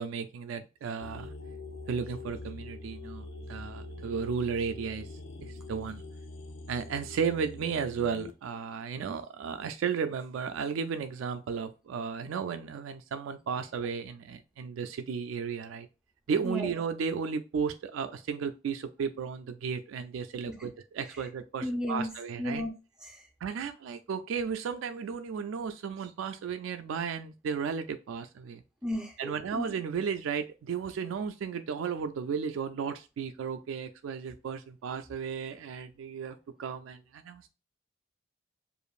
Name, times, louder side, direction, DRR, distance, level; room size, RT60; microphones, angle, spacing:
voice 1, 0.0-1.3 1.9-5.1 5.4-6.0 6.7-15.9 16.3-22.6 23.4-28.6 29.2-37.5, right 6 dB, 80° right, 8 dB, 0.3 m, -34 dB
sound 1, 1.0-8.3, left 3 dB, 70° left, 0.5 m, -44 dB
voice 2, 21.6-22.1 22.4-22.7 23.0-23.3 28.8-29.7, left 1 dB, 5° right, 1 dB, 0.6 m, -34 dB
4.9 x 2.5 x 2.4 m, 0.30 s
head